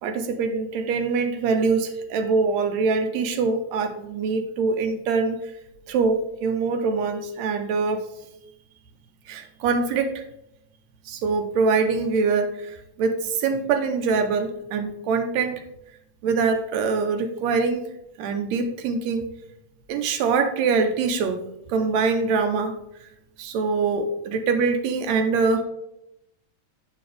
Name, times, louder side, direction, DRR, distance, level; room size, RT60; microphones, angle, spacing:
voice 1, 0.0-5.4 5.9-8.0 9.3-10.2 11.1-15.6 16.2-17.8 18.2-19.2 19.9-21.4 21.7-22.7 23.4-25.6, right 4 dB, 75° right, 6 dB, 2.0 m, -24 dB
9.2 x 5.2 x 3.4 m, 0.82 s
omnidirectional pair, 3.4 m